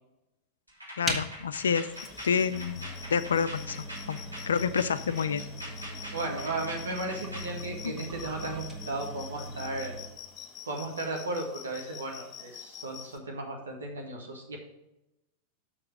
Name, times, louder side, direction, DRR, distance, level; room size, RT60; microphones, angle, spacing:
sound 1, 0.7-7.5, equal, 90° right, 3.0 m, -43 dB
voice 1, 1.0-1.9 2.2-2.8 3.1-3.8 4.1-4.2 4.5-5.4, left 6 dB, 70° left, 13 dB, 0.3 m, -28 dB
sound 2, 1.0-10.2, equal, 15° right, 1.6 m, -40 dB
sound 3, 1.9-13.2, left 9 dB, 25° left, 1.2 m, -47 dB
voice 2, 6.1-9.9 10.7-14.6, right 2 dB, 70° right, 1 dB, 1.3 m, -35 dB
6.7 x 5.9 x 6.5 m, 0.93 s
figure-of-eight pair, 90°, 0 cm